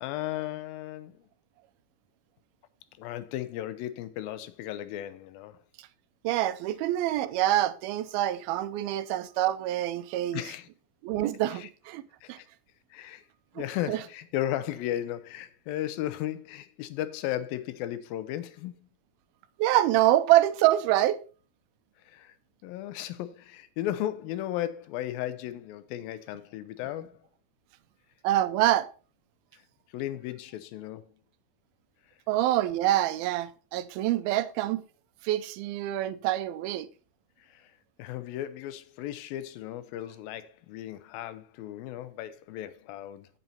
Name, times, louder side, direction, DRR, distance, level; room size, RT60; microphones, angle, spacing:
voice 1, 0.0-1.2 3.0-5.6 10.3-10.7 11.5-11.7 12.2-12.5 12.9-13.2 13.6-18.7 22.0-22.3 22.6-27.3 29.5-29.6 29.9-31.0 37.4-37.7 38.0-43.3, left 13 dB, 80° left, 2.5 m, -35 dB
voice 2, 6.2-10.4 11.0-12.0 12.3-12.4 13.6-14.0 19.6-21.2 28.2-28.9 32.3-34.8 35.2-36.9, right 14 dB, 90° right, 2.5 m, -26 dB
8.0 x 7.8 x 4.2 m
omnidirectional pair, 4.2 m